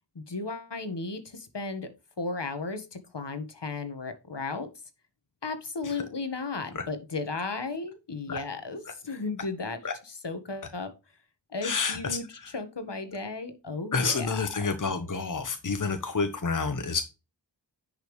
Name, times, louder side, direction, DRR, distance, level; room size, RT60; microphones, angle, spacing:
voice 1, 0.1-1.9 2.2-4.7 5.4-9.8 10.0-10.9 11.5-14.3 14.6-14.7, left 3 dB, 65° left, 9 dB, 1.6 m, -35 dB
voice 2, 11.6-12.2 13.9-17.0, left 4 dB, 45° left, 8 dB, 1.1 m, -29 dB
10.0 x 5.4 x 3.2 m, 0.28 s
wide cardioid pair, 60°, 45 cm